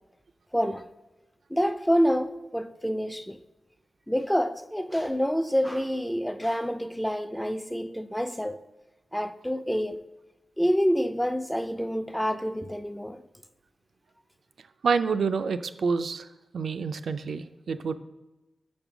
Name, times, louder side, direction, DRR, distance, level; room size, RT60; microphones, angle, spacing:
voice 1, 0.5-0.8 1.5-3.4 4.1-8.6 9.1-10.0 10.6-13.2, equal, 5° left, 0.3 m, -27 dB
voice 2, 14.8-16.3 16.5-17.9, right 5 dB, 75° right, 0.4 m, -27 dB
6.7 x 5.3 x 6.0 m
wide cardioid pair, 155°, 0 cm